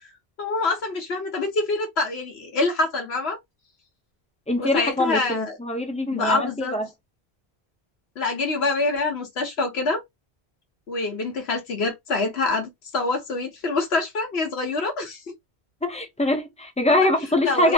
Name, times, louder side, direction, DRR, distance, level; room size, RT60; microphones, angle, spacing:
voice 1, 0.4-3.4 4.6-5.6 6.1-6.7 8.2-10.0 10.9-15.2 17.4-17.7, left 3 dB, 75° left, 1.3 m, -25 dB
voice 2, 4.5-6.9 15.8-17.7, left 1 dB, 10° left, 0.5 m, -23 dB
3.1 x 2.1 x 2.7 m
omnidirectional pair, 1.1 m